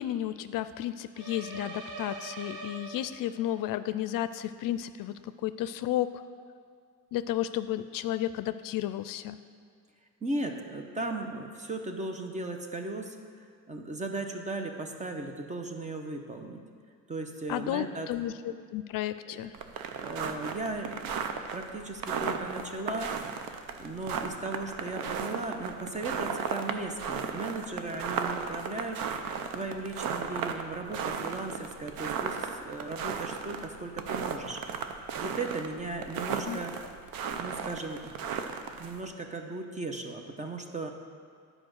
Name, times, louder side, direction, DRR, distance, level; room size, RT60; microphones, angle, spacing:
voice 1, 0.0-6.2 7.1-9.4 17.5-19.6 36.5-36.6, left 12 dB, 75° left, 13 dB, 0.5 m, -33 dB
sound 1, 1.1-3.5, right 3 dB, 60° right, 1.2 m, -42 dB
voice 2, 10.2-13.2 13.7-16.6 17.1-18.1 18.5-18.6 19.3-19.4 20.0-21.2 21.5-23.1 23.8-29.0 29.5-34.6 35.1-36.7 37.4-38.0 38.8-40.9, right 2 dB, 20° right, 4 dB, 0.9 m, -36 dB
sound 2, 19.5-39.0, right 6 dB, 80° right, 0.8 m, -35 dB
10.5 x 5.0 x 6.4 m, 2.1 s
cardioid pair, 120°, 34 cm